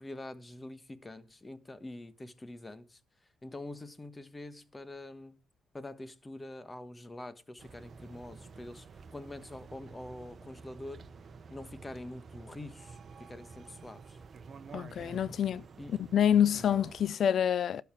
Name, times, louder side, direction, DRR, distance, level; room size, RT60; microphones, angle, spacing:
voice 1, 0.0-3.0 3.4-5.4 5.7-8.9 9.1-11.1 11.5-14.2 15.8-15.9, left 1 dB, 20° left, 1.3 m, -45 dB
sound 1, 7.6-17.1, right 5 dB, 45° right, 1.0 m, -50 dB
voice 2, 14.7-15.6 16.1-17.8, left 9 dB, 60° left, 0.4 m, -27 dB
12.0 x 5.8 x 7.3 m
cardioid pair, 90°, 0 cm